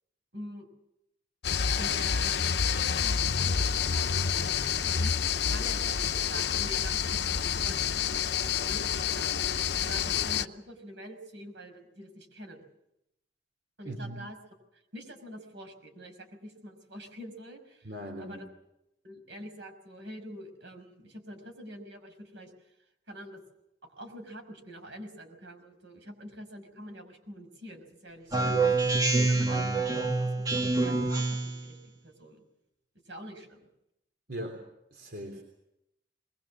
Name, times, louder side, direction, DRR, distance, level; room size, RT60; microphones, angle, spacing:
voice 1, 0.3-0.7 1.8-5.1 5.4-9.5 9.8-12.6 13.8-14.4 14.7-17.9 18.2-18.4 19.0-22.5 23.1-23.4 23.8-28.7 29.2-31.8 32.0-32.4 33.1-33.7, equal, 80° right, 6 dB, 5.8 m, -46 dB
sound 1, 1.4-10.5, left 7 dB, 65° left, 0.8 m, -28 dB
voice 2, 13.8-14.2 17.8-18.4 34.3-34.6 34.9-35.4, right 1 dB, 60° right, 3 dB, 3.4 m, -39 dB
Speech synthesizer, 28.3-31.6, right 3 dB, 20° right, 1.8 m, -26 dB
22.0 x 22.0 x 7.4 m, 0.84 s
head